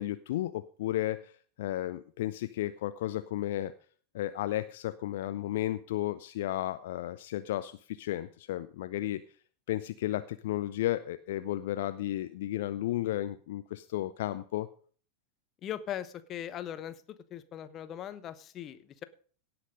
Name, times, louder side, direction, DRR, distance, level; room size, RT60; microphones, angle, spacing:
voice 1, 0.0-1.3 1.6-3.7 4.1-9.2 9.7-14.7, left 14 dB, 55° left, 12 dB, 0.5 m, -33 dB
voice 2, 15.6-17.0 17.3-19.0, left 10 dB, 30° left, 13 dB, 0.9 m, -39 dB
17.5 x 6.0 x 5.2 m, 0.43 s
figure-of-eight pair, 90°, 0 cm